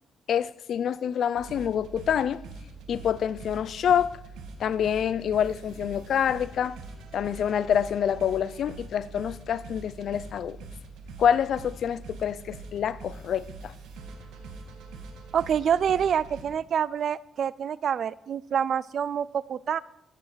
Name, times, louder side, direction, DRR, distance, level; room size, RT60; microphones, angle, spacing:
voice 1, 0.3-2.4 2.9-4.2 4.6-6.8 7.1-10.6 11.2-13.7, left 8 dB, 65° left, 0.6 m, -26 dB
sound 1, 1.3-16.4, right 3 dB, 85° right, 2.4 m, -44 dB
voice 2, 15.3-19.8, right 8 dB, 60° right, 0.5 m, -27 dB
21.0 x 8.6 x 5.0 m
cardioid pair, 90°, 0 cm